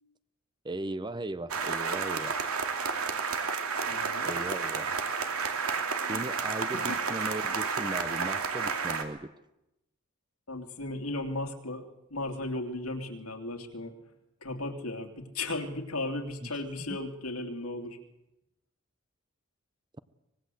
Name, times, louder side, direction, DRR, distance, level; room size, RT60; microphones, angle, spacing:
voice 1, 0.6-2.4 4.2-4.9 6.1-9.3 16.4-16.6 16.9-17.0, right 1 dB, 20° right, 14 dB, 0.8 m, -37 dB
sound 1, 1.5-9.0, right 5 dB, 90° right, 2.6 m, -31 dB
voice 2, 3.9-4.3 6.7-7.0 10.5-11.8 12.1-14.0 14.4-18.0, left 2 dB, 85° left, 5 dB, 3.0 m, -35 dB
24.5 x 20.5 x 7.9 m, 0.90 s
head